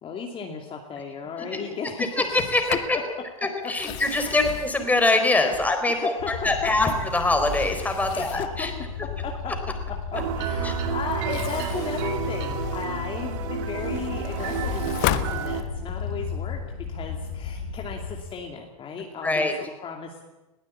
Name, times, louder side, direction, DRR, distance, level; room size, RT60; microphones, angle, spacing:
voice 1, 0.0-2.4 2.7-2.8 4.1-4.4 5.9-6.7 8.1-8.7 9.2-9.5 10.1-16.6 16.9-20.2, left 5 dB, 30° left, 1 dB, 2.6 m, -35 dB
voice 2, 2.0-3.0 3.7-8.7 10.6-10.7 19.2-19.5, left 2 dB, 10° left, 5 dB, 4.1 m, -23 dB
Sliding door, 2.2-3.0 3.7-6.0 6.5-8.7 11.1-13.0 13.5-16.0, left 15 dB, 50° left, 1.3 m, -35 dB
sound 1, 6.2-18.2, left 5 dB, 85° left, 5.5 m, -34 dB
sound 2, 10.1-15.6, right 9 dB, 60° right, 2.5 m, -31 dB
21.0 x 15.5 x 8.5 m, 1.0 s
hypercardioid pair, 105°, 18 cm